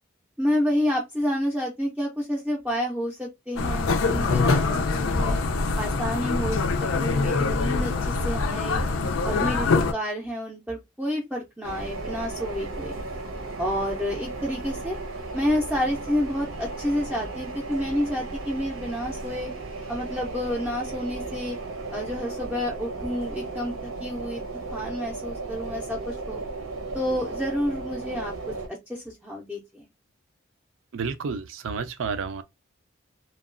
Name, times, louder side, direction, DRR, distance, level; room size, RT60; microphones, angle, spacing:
voice 1, 0.4-5.4 5.8-6.6 7.0-8.8 9.2-13.0 13.6-15.0 15.3-19.5 19.9-21.6 21.9-24.4 24.7-26.4 26.9-28.3 28.7-29.9, equal, 5° right, 0.4 m, -29 dB
sound 1, 3.6-9.9, left 3 dB, 85° left, 0.4 m, -24 dB
sound 2, 11.6-28.7, right 3 dB, 90° right, 0.8 m, -35 dB
voice 2, 30.9-32.4, right 5 dB, 75° right, 0.4 m, -30 dB
2.9 x 2.2 x 2.4 m
head